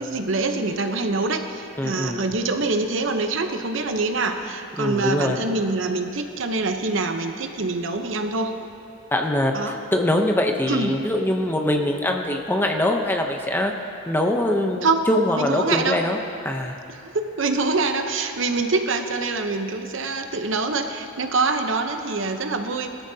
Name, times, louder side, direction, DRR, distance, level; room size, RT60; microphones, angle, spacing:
voice 1, 0.0-8.5 9.5-9.8 10.7-11.0 14.8-15.0 15.3-16.0 17.0-23.0, right 3 dB, 70° right, 6 dB, 0.9 m, -25 dB
voice 2, 1.8-2.2 4.8-5.4 9.1-13.7 14.1-16.2 16.4-16.8, left 1 dB, 10° left, 2 dB, 0.7 m, -23 dB
21.0 x 13.5 x 2.8 m, 2.7 s
head